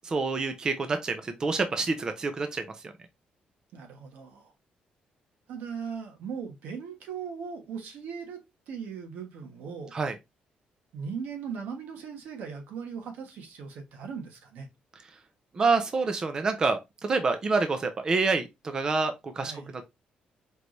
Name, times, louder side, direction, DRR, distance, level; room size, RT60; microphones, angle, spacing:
voice 1, 0.0-2.6 9.9-10.1 15.5-19.5, right 4 dB, 25° right, 0.5 m, -27 dB
voice 2, 3.7-4.5 5.5-9.9 10.9-14.7 19.4-19.8, right 6 dB, 85° right, 1.2 m, -39 dB
4.5 x 3.1 x 2.6 m
cardioid pair, 175°, 3 cm